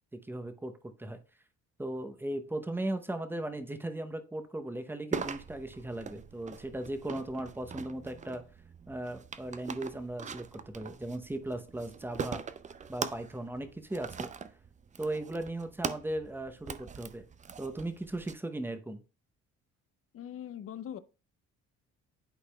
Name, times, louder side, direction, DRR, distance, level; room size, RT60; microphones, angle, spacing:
voice 1, 0.1-1.2 1.8-8.4 8.9-12.4 12.9-14.3 15.0-17.3 17.6-19.0, right 1 dB, 5° right, 0.7 m, -37 dB
sound 1, 5.1-18.3, right 6 dB, 25° right, 0.4 m, -42 dB
voice 2, 20.1-21.0, left 10 dB, 50° left, 0.5 m, -41 dB
11.5 x 4.0 x 2.2 m
cardioid pair, 90°, 30 cm